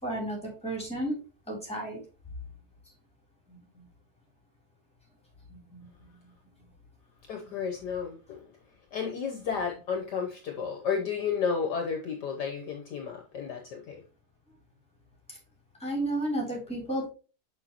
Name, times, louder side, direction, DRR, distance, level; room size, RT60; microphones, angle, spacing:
voice 1, 0.0-1.2 1.5-2.0 3.5-3.9 5.5-6.3 15.3-15.4 15.8-17.1, right 1 dB, 5° left, -2 dB, 3.0 m, -33 dB
voice 2, 7.3-8.5 8.9-14.0, left 6 dB, 60° left, 3 dB, 1.4 m, -32 dB
6.7 x 6.2 x 2.9 m, 0.34 s
omnidirectional pair, 2.2 m